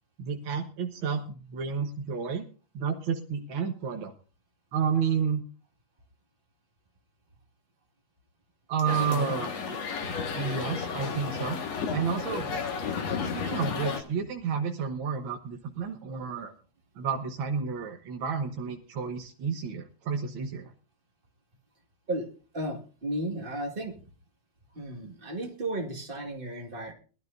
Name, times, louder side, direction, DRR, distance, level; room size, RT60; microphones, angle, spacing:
voice 1, 0.2-2.4 2.7-4.1 4.7-5.4 8.7-9.8 10.3-11.6 11.9-12.6 13.3-16.5 16.9-20.7, right 6 dB, 55° right, 3 dB, 1.5 m, -31 dB
sound 1, 8.9-14.0, left 6 dB, 60° left, 2.7 m, -32 dB
voice 2, 9.0-9.3 22.1-22.3 22.5-24.0 24.7-26.9, right 1 dB, 20° right, 3 dB, 1.6 m, -34 dB
22.0 x 12.5 x 2.6 m, 0.36 s
omnidirectional pair, 3.6 m